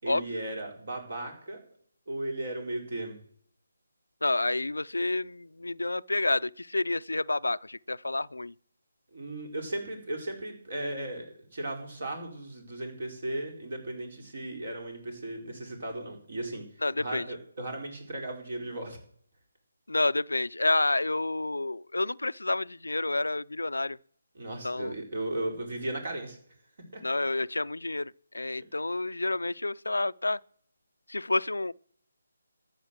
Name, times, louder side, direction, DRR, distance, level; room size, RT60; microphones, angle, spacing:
voice 1, 0.0-1.6 2.1-3.2 9.1-11.3 11.5-16.6 17.0-19.0 24.3-26.4 26.9-27.0, right 1 dB, 55° right, 4.5 m, -36 dB
voice 2, 4.2-8.5 16.8-17.3 19.9-24.0 24.6-24.9 27.0-30.4 31.1-31.7, left 2 dB, 90° left, 0.4 m, -29 dB
13.5 x 8.0 x 7.4 m
figure-of-eight pair, 155°, 0 cm